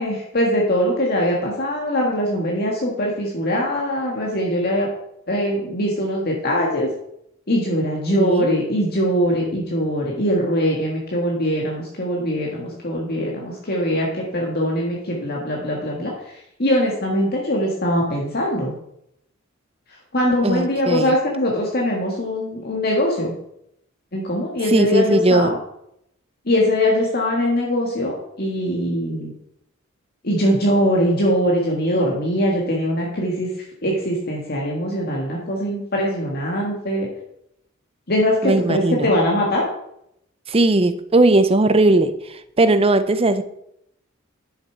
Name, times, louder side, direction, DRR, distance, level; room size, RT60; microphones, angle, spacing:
voice 1, 0.0-4.9 5.3-6.9 7.5-18.7 20.1-23.3 24.1-25.6 26.5-29.3 30.2-33.5 33.8-37.1 38.1-39.6, equal, 50° left, -2 dB, 1.8 m, -22 dB
voice 2, 8.1-8.6 20.4-21.1 24.7-25.5 38.4-39.1 40.5-43.4, right 2 dB, 30° right, 12 dB, 0.7 m, -18 dB
10.0 x 7.0 x 4.6 m, 0.77 s
head